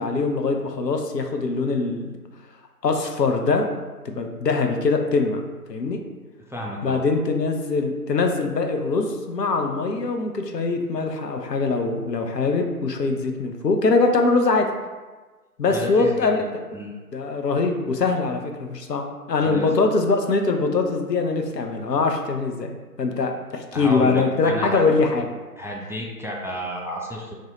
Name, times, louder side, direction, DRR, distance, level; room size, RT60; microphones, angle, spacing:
voice 1, 0.0-2.2 2.8-3.7 4.0-6.0 6.8-14.7 15.6-16.8 17.1-22.7 23.0-25.3, left 3 dB, 85° left, 4 dB, 0.6 m, -23 dB
voice 2, 6.5-7.0 15.7-16.5 16.7-16.9 19.4-19.7 23.7-24.8 25.6-27.3, equal, 5° right, -1 dB, 0.3 m, -31 dB
2.6 x 2.1 x 3.9 m, 1.3 s
figure-of-eight pair, 175°, 48 cm